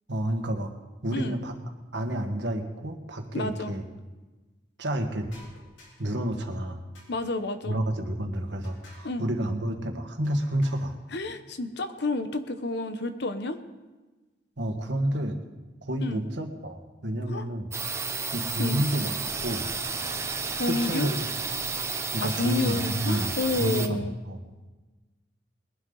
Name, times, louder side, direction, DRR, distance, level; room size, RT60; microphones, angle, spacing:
voice 1, 0.1-0.7 1.0-1.6 1.9-3.8 4.8-5.3 6.0-6.8 7.6-11.0 14.6-15.4 15.9-17.7 18.3-19.1 19.4-19.7 20.6-21.3 22.1-24.4, right 1 dB, 65° right, 4 dB, 1.6 m, -30 dB
voice 2, 3.3-3.8 7.1-7.8 9.0-9.2 11.1-13.6 16.0-16.3 17.3-17.5 18.6-18.8 20.5-21.1 22.2-24.1, left 2 dB, 60° left, 9 dB, 1.0 m, -30 dB
sound 1, 5.3-6.2 7.0-7.6 8.6-9.2 10.2-11.0, left 2 dB, 80° left, 3.6 m, -54 dB
sound 2, 17.7-23.9, right 4 dB, 15° right, 0.7 m, -32 dB
21.0 x 11.5 x 4.0 m, 1.2 s
head